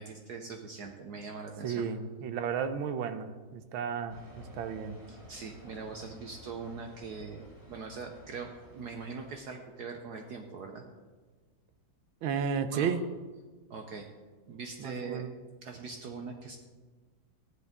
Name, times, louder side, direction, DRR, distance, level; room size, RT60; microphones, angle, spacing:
voice 1, 0.0-1.8 5.1-10.8 12.7-12.9 13.7-14.1 14.5-15.2 15.6-16.6, right 4 dB, 65° right, 4 dB, 1.2 m, -42 dB
voice 2, 1.6-5.0 12.2-13.0 14.8-15.3, right 7 dB, 85° right, 10 dB, 1.6 m, -33 dB
sound 1, 4.1-9.4, equal, 10° right, 1.6 m, -53 dB
14.5 x 10.5 x 3.6 m, 1.4 s
omnidirectional pair, 2.2 m